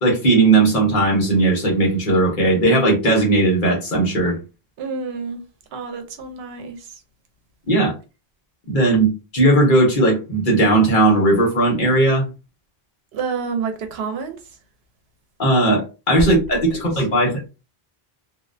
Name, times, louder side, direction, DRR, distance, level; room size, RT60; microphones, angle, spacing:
voice 1, 0.0-4.4 7.7-7.9 8.7-12.2 15.4-17.5, right 2 dB, 55° left, 1.0 m, -17 dB
voice 2, 4.8-5.4 5.7-7.0 13.1-14.6 16.7-17.0, right 5 dB, 80° right, 0.8 m, -29 dB
2.3 x 2.1 x 2.5 m
omnidirectional pair, 1.0 m